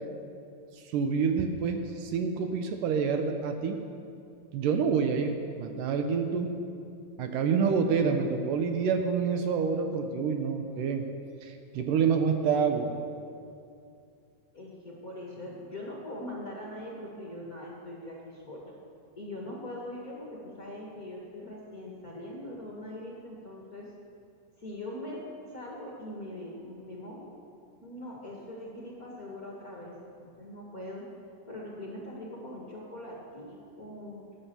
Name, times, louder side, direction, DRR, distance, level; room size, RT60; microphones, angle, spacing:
voice 1, 0.8-3.8 4.5-5.3 5.6-6.5 7.2-11.0 11.4-13.0, right 6 dB, 75° right, 5 dB, 2.4 m, -27 dB
voice 2, 14.5-18.6 19.2-23.9 24.6-25.2 25.5-27.3 27.8-31.0 31.5-34.4, left 1 dB, 35° left, -4 dB, 1.7 m, -42 dB
16.5 x 10.0 x 7.0 m, 2.5 s
omnidirectional pair, 4.0 m